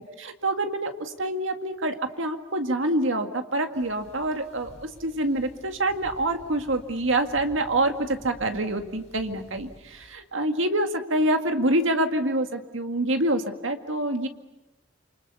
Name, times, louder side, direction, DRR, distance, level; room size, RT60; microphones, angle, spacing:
voice 1, 0.0-14.3, right 1 dB, 70° right, 6 dB, 2.0 m, -26 dB
sound 1, 3.7-10.1, equal, 35° left, 6.9 m, -50 dB
28.0 x 25.5 x 6.9 m, 1.0 s
head